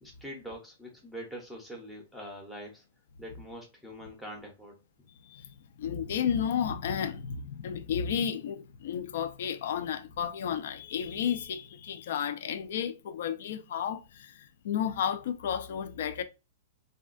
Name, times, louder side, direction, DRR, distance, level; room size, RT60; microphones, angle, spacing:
voice 1, 0.0-2.8 3.2-4.8, equal, ahead, 0.6 m, -44 dB
voice 2, 5.8-16.2, left 8 dB, 60° left, 0.4 m, -32 dB
3.4 x 2.2 x 2.4 m
hypercardioid pair, 160°, 0 cm